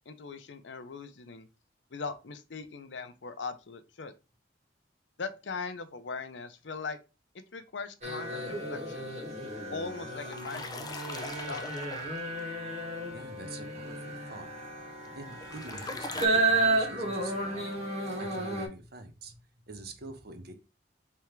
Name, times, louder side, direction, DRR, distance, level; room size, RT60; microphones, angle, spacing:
voice 1, 0.0-1.5 1.9-4.1 5.2-7.0 7.5-9.1 9.7-11.7, left 4 dB, 80° left, 10 dB, 0.7 m, -40 dB
sound 1, 8.0-18.7, right 2 dB, 40° right, 1.8 m, -32 dB
sound 2, 9.9-12.4 15.0-16.3, left 3 dB, 20° left, 0.5 m, -41 dB
voice 2, 13.0-14.7 15.1-17.9 18.2-20.5, right 2 dB, 60° right, 7 dB, 0.9 m, -46 dB
3.5 x 3.4 x 4.5 m, 0.29 s
head